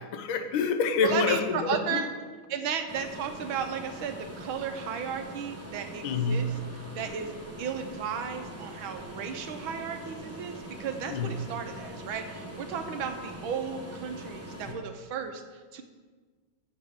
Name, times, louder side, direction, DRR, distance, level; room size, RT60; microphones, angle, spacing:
voice 1, 0.0-2.0 6.0-6.7 11.1-11.5 14.7-14.8, left 4 dB, 85° left, 8 dB, 1.6 m, -28 dB
voice 2, 1.0-2.1 2.5-6.5 7.0-15.8, right 7 dB, 85° right, 7 dB, 1.7 m, -34 dB
sound 1, 2.9-14.7, right 1 dB, 10° right, 0.8 m, -42 dB
14.0 x 7.6 x 3.6 m, 1.5 s
omnidirectional pair, 2.2 m